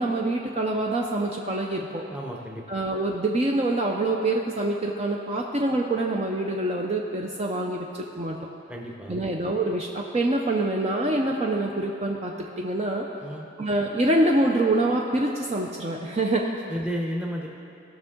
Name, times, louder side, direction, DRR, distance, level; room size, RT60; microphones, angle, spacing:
voice 1, 0.0-2.0 2.7-8.4 9.1-13.1 13.6-16.5, right 2 dB, 30° right, 0 dB, 0.5 m, -25 dB
voice 2, 2.1-2.6 8.7-9.2 13.2-13.5 16.7-17.5, equal, 5° right, -1 dB, 0.8 m, -32 dB
17.0 x 6.1 x 3.7 m, 2.7 s
head